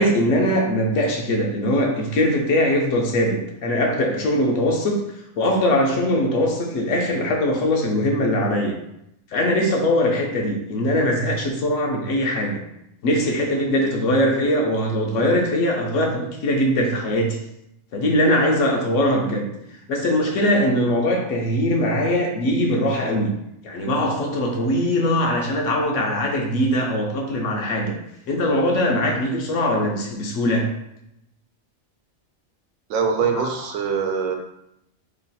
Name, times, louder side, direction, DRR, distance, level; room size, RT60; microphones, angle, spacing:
voice 1, 0.0-5.0 5.4-8.7 9.3-12.6 13.0-17.4 17.9-19.5 19.9-23.3 23.6-28.0 28.3-30.7 33.3-33.5, left 1 dB, 70° left, 1 dB, 1.0 m, -21 dB
voice 2, 32.9-34.3, right 6 dB, 90° right, 3 dB, 1.0 m, -23 dB
3.1 x 2.3 x 4.0 m, 0.81 s
omnidirectional pair, 1.4 m